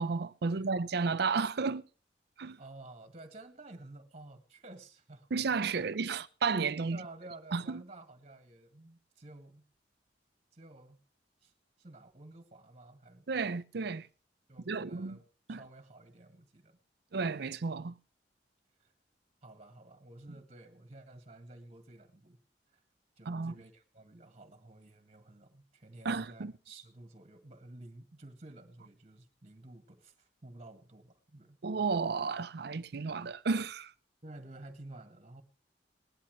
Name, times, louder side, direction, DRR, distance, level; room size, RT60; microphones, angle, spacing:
voice 1, 0.0-1.9 2.4-2.6 5.3-7.0 7.5-7.8 13.3-14.1 14.7-15.2 15.5-15.6 17.1-18.0 23.3-23.5 26.0-26.5 31.6-33.9, right 4 dB, 65° right, 0.6 m, -32 dB
voice 2, 2.6-5.3 6.0-6.1 6.9-9.6 10.5-11.0 11.4-11.5 11.8-13.3 14.5-15.2 15.5-16.8 18.8-18.9 19.4-22.4 22.7-22.8 23.2-31.6 34.2-35.4, right 2 dB, 40° right, 1.9 m, -52 dB
19.0 x 11.5 x 3.1 m
head